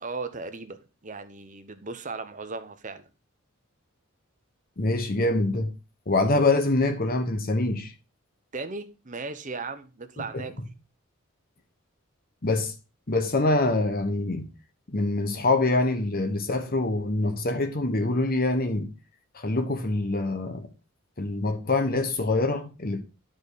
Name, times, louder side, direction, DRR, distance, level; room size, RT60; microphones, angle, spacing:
voice 1, 0.0-3.1 8.5-10.5, right 4 dB, 35° right, 0.9 m, -37 dB
voice 2, 4.8-5.7 6.1-7.9 10.3-10.4 12.4-12.7 13.1-14.5 14.9-18.9 19.3-20.7 21.2-23.0, left 2 dB, 45° left, 1.2 m, -25 dB
10.5 x 5.1 x 4.1 m
head